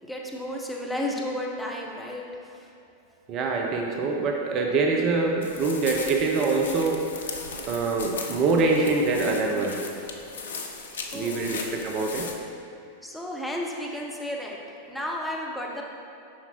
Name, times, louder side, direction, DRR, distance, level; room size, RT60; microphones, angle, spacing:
voice 1, 0.0-2.7 11.1-11.7 13.0-15.8, left 1 dB, 5° left, -2 dB, 0.8 m, -33 dB
voice 2, 3.3-9.8 11.1-12.3, right 3 dB, 35° right, 1 dB, 0.6 m, -25 dB
sound 1, 5.4-12.3, left 4 dB, 65° left, 0.5 m, -37 dB
7.3 x 5.8 x 3.0 m, 2.6 s
figure-of-eight pair, 90°, 0 cm